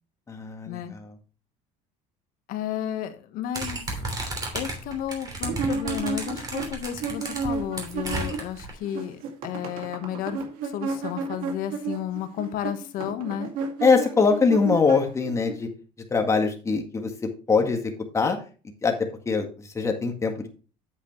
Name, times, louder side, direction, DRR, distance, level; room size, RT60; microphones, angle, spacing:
voice 1, 0.3-1.1 13.8-15.7 16.1-18.4 18.8-20.5, left 4 dB, 20° left, 4 dB, 1.7 m, -23 dB
voice 2, 2.5-4.1 4.5-13.5, left 10 dB, 60° left, 8 dB, 1.4 m, -33 dB
sound 1, 3.5-8.7, right 2 dB, 25° right, 3.1 m, -33 dB
sound 2, 5.4-8.6 8.8-15.5, right 4 dB, 65° right, 2.3 m, -32 dB
8.4 x 8.2 x 3.2 m, 0.36 s
cardioid pair, 135°, 16 cm